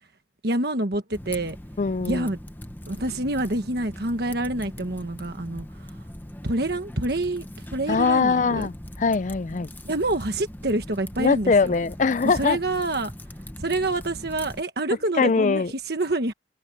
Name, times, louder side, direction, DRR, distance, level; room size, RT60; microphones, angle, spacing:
voice 1, 0.4-1.6 2.1-2.4 2.9-6.0 6.4-8.7 9.8-11.7 12.2-13.1 13.6-16.3, right 2 dB, 55° right, 1.4 m, -27 dB
Typing, 1.1-14.6, left 1 dB, 10° left, 0.9 m, -40 dB
voice 2, 1.8-2.3 7.9-8.7 9.0-9.7 11.2-12.6 15.2-15.7, left 4 dB, 40° left, 0.4 m, -21 dB
head